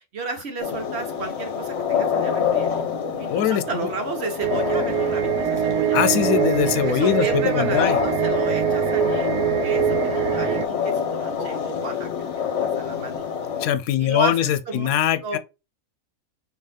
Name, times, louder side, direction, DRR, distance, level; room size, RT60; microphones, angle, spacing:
voice 1, 0.0-2.7 3.2-6.0 6.8-9.3 9.6-13.3 14.0-15.0 15.2-15.4, right 4 dB, 50° right, 1.1 m, -33 dB
sound 1, 0.6-13.7, left 7 dB, 55° left, 1.0 m, -27 dB
voice 2, 3.3-3.9 5.9-8.0 13.6-15.4, left 10 dB, 75° left, 1.0 m, -22 dB
sound 2, 4.4-10.7, right 11 dB, 70° right, 0.8 m, -24 dB
5.5 x 2.8 x 3.2 m
omnidirectional pair, 1.5 m